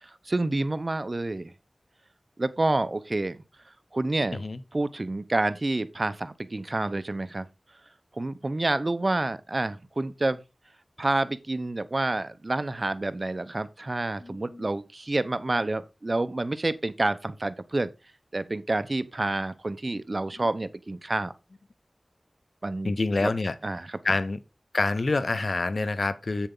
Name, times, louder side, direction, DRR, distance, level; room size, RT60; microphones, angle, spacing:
voice 1, 0.0-1.5 2.4-3.4 3.9-4.4 4.7-7.5 8.2-10.4 11.0-17.9 18.3-21.3 22.6-22.9 23.2-23.3 23.6-24.0, right 2 dB, 50° right, 0.9 m, -28 dB
voice 2, 14.2-14.7 20.4-20.5 22.8-23.6 24.0-24.4 24.7-26.5, left 3 dB, 70° left, 0.8 m, -27 dB
8.2 x 7.2 x 3.8 m
wide cardioid pair, 45°, 0 cm